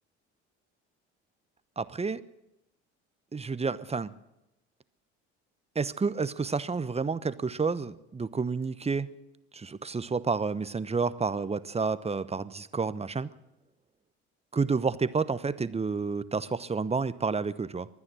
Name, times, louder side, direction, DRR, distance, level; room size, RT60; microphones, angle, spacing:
voice 1, 1.8-2.2 3.3-4.1 5.7-9.1 9.5-13.3 14.5-17.9, right 4 dB, 20° right, 15 dB, 1.0 m, -30 dB
23.0 x 9.7 x 6.3 m, 0.90 s
hypercardioid pair, 65°, 32 cm